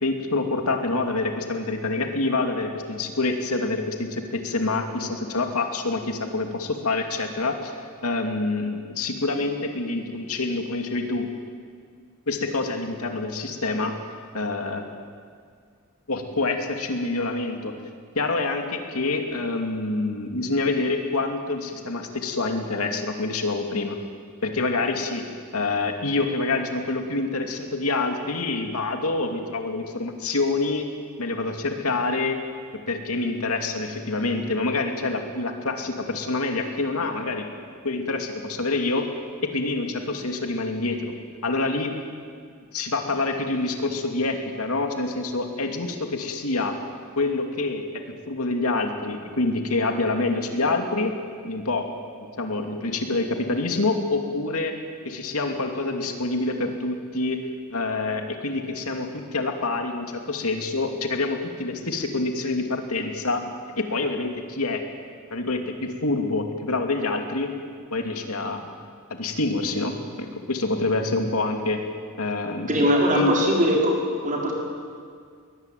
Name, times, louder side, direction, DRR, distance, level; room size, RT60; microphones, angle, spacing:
voice 1, 0.0-11.3 12.3-13.9 14.3-14.8 16.1-17.7 18.1-24.0 24.4-25.2 25.5-30.9 31.2-32.4 32.9-37.5 37.8-39.1 39.4-41.1 41.4-42.0 42.7-46.7 47.2-51.1 51.4-51.9 52.4-54.7 55.0-63.4 63.8-64.8 65.3-67.5 67.9-68.6 69.1-71.8 72.2-73.3, left 3 dB, 70° left, 4 dB, 2.7 m, -26 dB
voice 2, 72.7-74.0 74.2-74.5, equal, 35° right, -1 dB, 5.3 m, -21 dB
22.5 x 21.0 x 9.3 m, 2.1 s
head